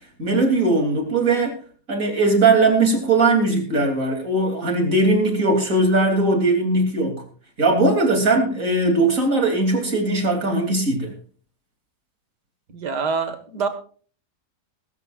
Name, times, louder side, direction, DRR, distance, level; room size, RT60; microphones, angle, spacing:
voice 1, 0.2-1.5 1.9-7.2 7.6-11.1, right 2 dB, 55° right, 3 dB, 3.5 m, -19 dB
voice 2, 12.7-13.7, right 5 dB, 85° right, 9 dB, 2.3 m, -25 dB
22.0 x 12.5 x 2.5 m, 0.42 s
omnidirectional pair, 1.7 m